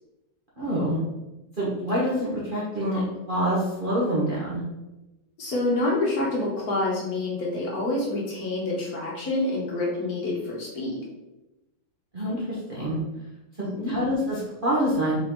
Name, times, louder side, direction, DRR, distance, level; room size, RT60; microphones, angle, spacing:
voice 1, 0.6-1.0 1.6-4.6 12.1-13.0 13.6-15.2, equal, 40° right, -8 dB, 0.9 m, -26 dB
voice 2, 5.4-10.9 13.6-13.9, left 2 dB, 60° left, -3 dB, 1.3 m, -27 dB
4.0 x 3.7 x 3.0 m, 1.0 s
omnidirectional pair, 1.9 m